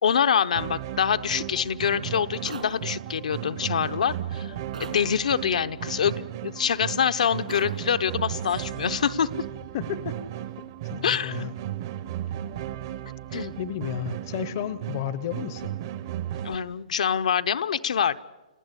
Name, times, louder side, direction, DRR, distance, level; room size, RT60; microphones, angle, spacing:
voice 1, 0.0-4.5 4.8-9.3 11.0-11.4 13.3-13.5 16.4-18.2, left 7 dB, 70° left, 11 dB, 0.8 m, -25 dB
sound 1, 0.6-16.6, right 12 dB, 30° right, 0.7 m, -35 dB
sound 2, 2.4-2.8 4.7-5.0 7.5-7.8, right 5 dB, 90° right, 5.8 m, -38 dB
voice 2, 9.7-10.2 10.6-11.5 13.6-15.8, left 10 dB, 30° left, 16 dB, 0.7 m, -33 dB
30.0 x 16.0 x 8.3 m, 1.2 s
hypercardioid pair, 175°, 4 cm